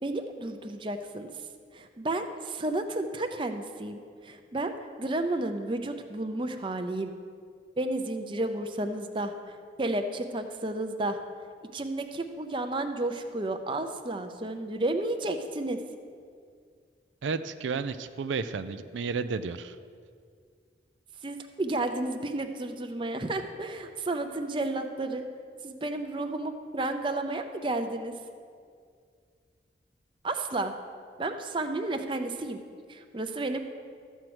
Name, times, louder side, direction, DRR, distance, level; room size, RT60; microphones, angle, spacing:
voice 1, 0.0-1.3 1.7-4.7 5.0-7.1 7.8-11.2 11.7-15.8 21.2-25.2 25.6-28.1 30.2-30.7 31.2-32.6 32.9-33.6, right 2 dB, 25° right, 6 dB, 0.5 m, -32 dB
voice 2, 17.2-19.8, right 5 dB, 90° right, 11 dB, 0.4 m, -32 dB
13.0 x 4.5 x 7.9 m, 2.2 s
head